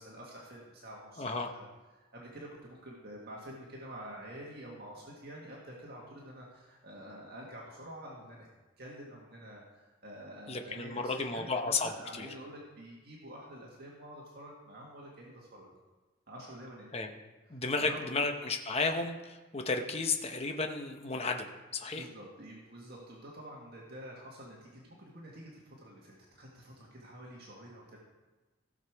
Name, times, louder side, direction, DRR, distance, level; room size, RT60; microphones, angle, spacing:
voice 1, 0.0-1.7 2.0-8.5 8.8-15.7 16.3-16.9 17.5-18.3 22.0-28.0, equal, 50° right, -3 dB, 1.8 m, -48 dB
voice 2, 1.2-1.5 10.5-12.3 16.9-17.1 17.5-22.1, left 3 dB, 30° left, 4 dB, 0.9 m, -33 dB
16.0 x 6.6 x 4.7 m, 1.2 s
head